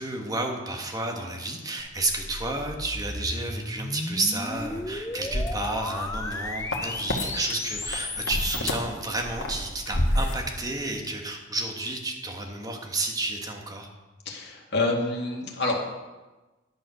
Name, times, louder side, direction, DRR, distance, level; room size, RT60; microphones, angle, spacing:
voice 1, 0.0-13.9, right 2 dB, 20° right, 2 dB, 1.5 m, -31 dB
sound 1, 1.9-8.6, left 2 dB, 15° left, 0.6 m, -34 dB
sound 2, 4.5-7.3 7.5-10.4, left 1 dB, 80° left, 1.7 m, -30 dB
voice 2, 14.3-15.8, left 2 dB, 60° left, 0 dB, 2.1 m, -27 dB
11.5 x 7.1 x 6.3 m, 1.2 s
head